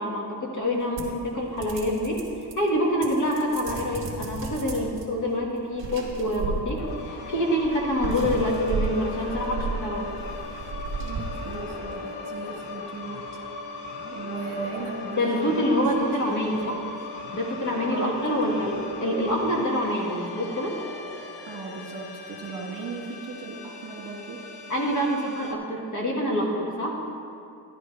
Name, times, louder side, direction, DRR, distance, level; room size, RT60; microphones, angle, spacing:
voice 1, 0.0-2.3 2.5-10.1 15.2-16.8 17.3-20.8 24.7-27.0, equal, 45° left, -2 dB, 1.6 m, -26 dB
sound 1, 1.0-2.7 3.0-5.0 5.7-7.1 7.6-11.9, right 3 dB, 30° right, 1.7 m, -33 dB
sound 2, 6.7-25.5, left 3 dB, 90° left, 1.1 m, -38 dB
voice 2, 11.0-13.2 14.1-15.7 16.3-17.1 17.9-18.6 21.5-24.4, right 4 dB, 50° right, -2 dB, 1.8 m, -37 dB
11.5 x 11.5 x 3.2 m, 2.5 s
cardioid pair, 165°, 41 cm